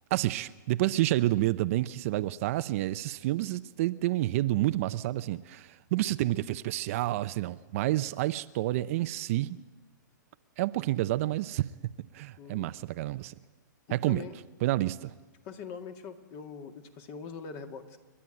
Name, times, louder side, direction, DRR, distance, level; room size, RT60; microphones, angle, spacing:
voice 1, 0.1-9.6 10.6-11.6 12.0-13.3 13.9-14.2 14.6-15.1, right 16 dB, 45° right, 0.6 m, -29 dB
voice 2, 12.4-12.7 13.9-14.3 15.4-18.0, left 6 dB, 35° left, 2.1 m, -42 dB
29.5 x 11.5 x 9.0 m
hypercardioid pair, 140°, 11 cm